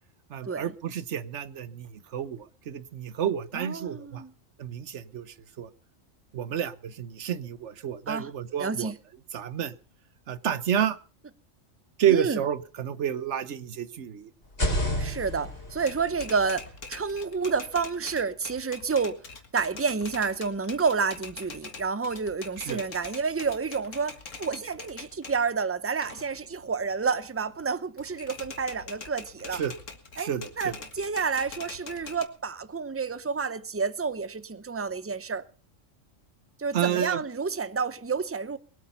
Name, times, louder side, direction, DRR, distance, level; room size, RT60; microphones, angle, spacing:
voice 1, 0.3-4.2 4.6-5.7 6.3-8.9 9.3-9.7 10.3-11.0 12.0-14.3 22.6-22.8 29.6-29.7 30.2-30.7 36.7-37.2, right 9 dB, 65° right, 1.2 m, -30 dB
voice 2, 3.5-4.3 8.1-8.3 8.6-9.0 12.1-12.4 15.0-19.2 19.5-29.6 30.2-30.3 30.6-35.4 36.6-38.6, right 5 dB, 15° right, 0.5 m, -29 dB
sound 1, 14.4-18.3, left 1 dB, 45° left, 4.7 m, -33 dB
Typewriter, 15.8-25.4 25.8-27.6 28.0-32.2, left 4 dB, 75° left, 2.1 m, -44 dB
22.0 x 8.5 x 5.5 m
omnidirectional pair, 1.3 m